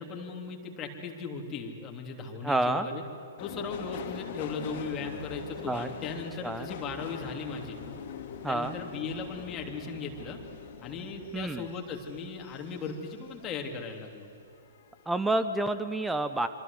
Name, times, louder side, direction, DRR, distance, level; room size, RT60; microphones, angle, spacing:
voice 1, 0.0-3.0 3.4-7.8 8.5-10.4 10.8-14.3, left 4 dB, 25° left, 2 dB, 3.2 m, -37 dB
voice 2, 2.4-2.9 5.6-5.9 6.4-6.7 8.4-8.7 11.3-11.6 15.1-16.5, right 2 dB, 5° right, 11 dB, 1.1 m, -29 dB
Subway metro underground, 3.4-14.1 14.5-15.2 15.5-15.6, left 7 dB, 45° left, 2.6 m, -43 dB
26.5 x 25.5 x 8.3 m, 2.9 s
figure-of-eight pair, 115°, 0 cm